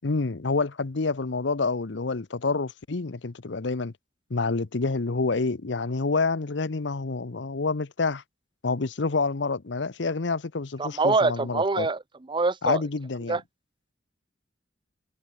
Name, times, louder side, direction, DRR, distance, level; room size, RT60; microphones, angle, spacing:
voice 1, 0.0-3.9 4.3-8.2 8.6-11.9 12.6-13.4, left 3 dB, 70° left, 0.8 m, -28 dB
voice 2, 10.8-12.0 12.3-12.8 13.3-13.4, right 3 dB, 25° right, 0.6 m, -24 dB
head